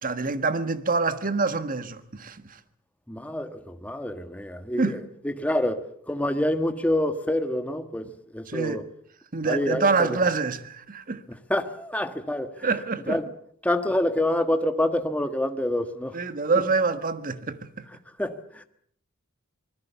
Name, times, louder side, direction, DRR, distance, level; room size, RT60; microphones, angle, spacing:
voice 1, 0.0-2.6 4.8-5.0 8.5-8.8 9.3-11.2 12.6-13.2 16.1-17.9, right 4 dB, 40° right, 1.6 m, -26 dB
voice 2, 3.1-8.8 9.4-10.2 11.3-12.7 13.1-13.3 13.6-16.2 16.6-16.7 18.2-18.6, left 1 dB, 5° left, 1.5 m, -27 dB
26.0 x 20.5 x 7.0 m
head